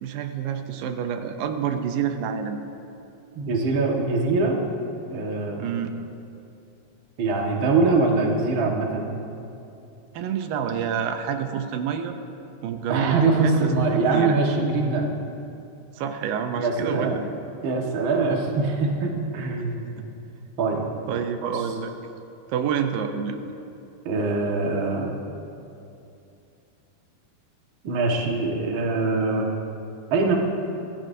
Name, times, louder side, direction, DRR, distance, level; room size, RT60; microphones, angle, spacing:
voice 1, 0.0-2.6 5.6-5.9 10.1-12.2 12.6-13.6 13.9-14.3 16.0-17.2 21.1-21.9 22.5-23.4, right 7 dB, 85° right, 7 dB, 2.6 m, -28 dB
voice 2, 3.4-4.7 5.1-5.7 7.2-9.1 12.9-15.2 16.6-17.2 17.6-19.9 20.6-20.9 21.4-21.6 24.1-25.2 27.8-29.5 30.1-30.3, right 3 dB, 45° right, 0 dB, 1.8 m, -23 dB
23.5 x 17.0 x 2.7 m, 2.7 s
omnidirectional pair, 4.0 m